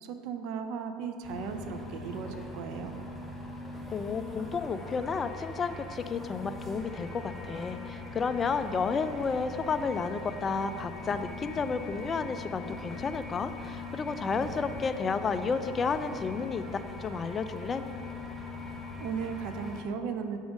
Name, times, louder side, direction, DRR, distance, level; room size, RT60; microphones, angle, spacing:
voice 1, 0.0-3.0 19.0-20.4, right 6 dB, 65° right, 7 dB, 0.4 m, -36 dB
sound 1, 1.2-19.8, left 2 dB, 10° right, 0.8 m, -41 dB
voice 2, 3.9-16.6 17.0-17.8, left 5 dB, 30° left, 10 dB, 0.3 m, -31 dB
6.1 x 3.6 x 6.1 m, 2.6 s
supercardioid pair, 105°, 0 cm